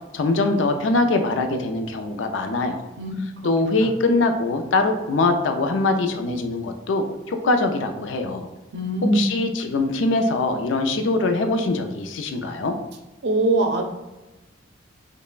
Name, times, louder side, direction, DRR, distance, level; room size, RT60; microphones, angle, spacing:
voice 1, 0.1-2.9 3.4-8.5 9.1-12.8, left 2 dB, 85° left, 6 dB, 0.4 m, -22 dB
voice 2, 3.0-3.3 8.7-9.3 13.2-13.8, right 1 dB, 65° right, 3 dB, 0.5 m, -21 dB
5.2 x 2.1 x 2.4 m, 1.0 s
head